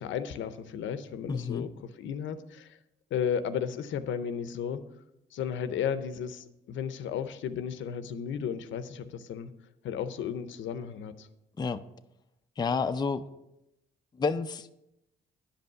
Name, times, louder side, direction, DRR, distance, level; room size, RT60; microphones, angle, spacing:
voice 1, 0.0-2.8 3.1-4.8 5.3-9.5 9.8-11.3, left 8 dB, 75° left, 12 dB, 0.7 m, -34 dB
voice 2, 1.3-1.7 11.6-11.8 12.6-13.2 14.2-14.7, left 5 dB, 20° left, 10 dB, 0.4 m, -29 dB
10.0 x 5.4 x 5.6 m, 0.88 s
cardioid pair, 90°, 20 cm